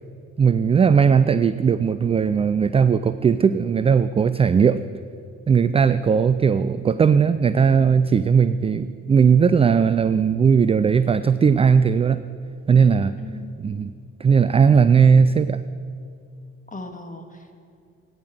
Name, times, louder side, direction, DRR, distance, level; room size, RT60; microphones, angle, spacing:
voice 1, 0.4-4.8 5.5-12.2 12.7-13.1 13.6-13.9 14.2-15.6, right 6 dB, 15° right, 13 dB, 0.3 m, -18 dB
voice 2, 5.6-6.0 13.2-13.5 16.7-17.6, left 3 dB, 20° left, 5 dB, 1.9 m, -39 dB
15.0 x 9.5 x 7.9 m, 2.3 s
figure-of-eight pair, 45°, 39 cm